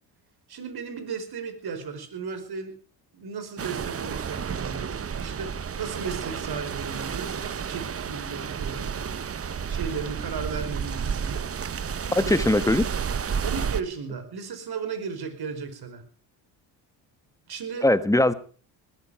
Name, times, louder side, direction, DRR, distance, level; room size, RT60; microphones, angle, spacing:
voice 1, 0.5-2.7 3.1-9.3 9.7-11.8 12.2-12.4 13.4-16.0 17.5-17.9, right 5 dB, 50° right, 9 dB, 5.0 m, -35 dB
sound 1, 3.6-13.8, right 7 dB, 30° right, 0.9 m, -31 dB
voice 2, 12.1-12.8 17.8-18.3, left 1 dB, 5° left, 14 dB, 1.5 m, -20 dB
20.0 x 13.5 x 4.9 m, 0.40 s
supercardioid pair, 80°, 47 cm